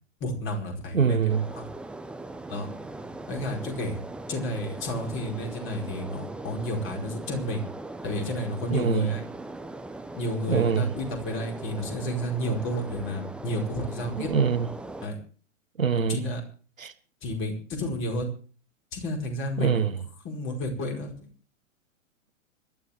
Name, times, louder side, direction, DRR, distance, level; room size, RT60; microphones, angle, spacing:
voice 1, 0.2-1.7 2.5-2.7 3.3-4.0 4.3-7.6 8.0-9.3 10.1-14.3 15.0-15.2 16.1-16.4 17.2-18.3 18.9-19.8 20.2-21.3, equal, 30° left, 4.9 m, -31 dB
voice 2, 0.9-1.4 8.7-9.1 10.5-10.9 14.2-14.7 15.8-16.2 16.8-16.9 19.6-19.9, right 6 dB, 85° right, 1.6 m, -23 dB
sound 1, 1.3-15.1, right 2 dB, 5° right, 0.8 m, -40 dB
26.0 x 11.5 x 3.6 m
hypercardioid pair, 110°, 39 cm